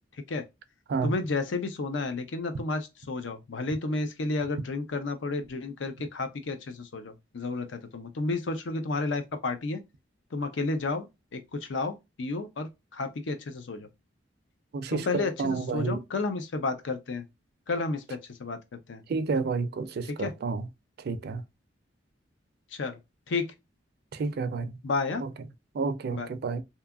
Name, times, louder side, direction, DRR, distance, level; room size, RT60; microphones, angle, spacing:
voice 1, 1.0-9.8 10.3-13.9 14.9-17.2 17.7-18.6 18.9-19.0 20.1-20.3 22.7-23.0 23.3-23.5 24.8-25.2 26.1-26.3, left 3 dB, 75° left, 0.6 m, -31 dB
voice 2, 14.7-16.0 19.1-20.7 21.0-21.4 24.1-24.8 25.2-25.3 25.7-26.6, right 4 dB, 60° right, 0.4 m, -30 dB
2.7 x 2.3 x 2.3 m
head